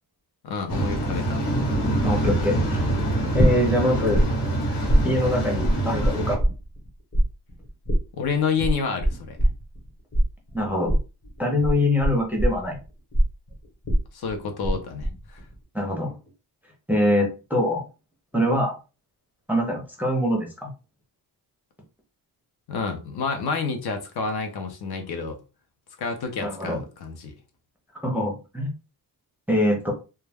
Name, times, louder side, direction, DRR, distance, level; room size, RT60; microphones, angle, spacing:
voice 1, 0.4-1.5 8.1-9.4 14.1-15.4 22.7-25.4 26.0-27.3, left 5 dB, 65° left, 4 dB, 0.7 m, -29 dB
Waves surf, 0.7-6.4, right 1 dB, 80° left, 1.2 m, -25 dB
voice 2, 2.0-2.8 3.3-4.2 5.0-6.4 10.5-11.0 11.4-12.8 15.7-16.1 16.9-17.8 18.3-18.7 19.5-20.7 26.4-26.8 28.0-28.7 29.5-29.9, left 1 dB, 5° right, -1 dB, 0.5 m, -23 dB
sound 1, 3.4-4.2 4.5-6.9 7.1-14.8 15.0-15.5, right 1 dB, 30° left, 1.0 m, -22 dB
2.2 x 2.2 x 3.3 m, 0.32 s
wide cardioid pair, 165°, 41 cm